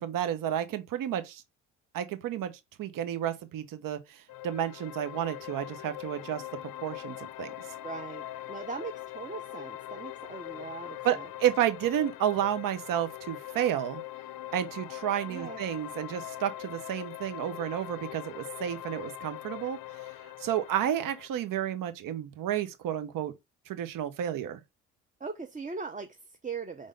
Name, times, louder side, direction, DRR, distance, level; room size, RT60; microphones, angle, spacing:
voice 1, 0.0-1.4 1.9-2.5 2.8-6.4 6.8-7.5 11.0-14.0 14.5-19.8 20.4-23.3 23.7-24.6, right 10 dB, 55° right, 1.1 m, -31 dB
sound 1, 4.3-21.3, left 14 dB, 60° left, 0.7 m, -42 dB
voice 2, 7.8-11.3 15.3-15.6 25.2-26.9, right 4 dB, 20° right, 0.8 m, -40 dB
5.3 x 3.6 x 5.2 m
hypercardioid pair, 55°, 38 cm